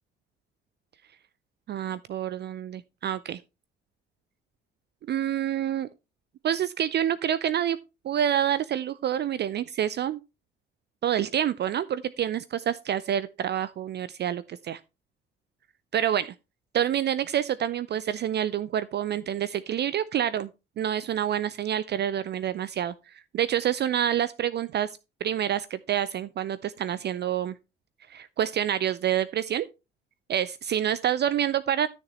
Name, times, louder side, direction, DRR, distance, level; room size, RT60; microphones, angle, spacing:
voice 1, 1.7-3.4 5.1-5.9 6.4-7.8 8.0-10.2 11.0-14.8 15.9-16.3 16.7-20.5 20.8-22.9 23.3-24.9 25.2-27.5 28.1-29.7 30.3-31.9, right 10 dB, 35° right, 0.5 m, -27 dB
12.5 x 6.6 x 3.1 m
figure-of-eight pair, 45°, 29 cm